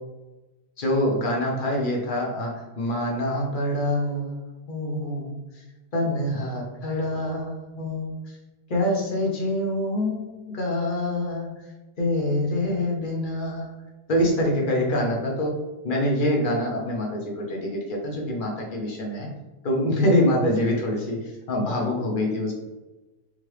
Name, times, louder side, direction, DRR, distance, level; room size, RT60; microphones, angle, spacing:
voice 1, 0.8-5.4 5.9-8.2 8.7-11.5 12.0-13.7 14.1-19.3 19.6-22.5, left 1 dB, 40° left, -1 dB, 0.8 m, -25 dB
3.7 x 3.3 x 3.2 m, 1.1 s
omnidirectional pair, 1.8 m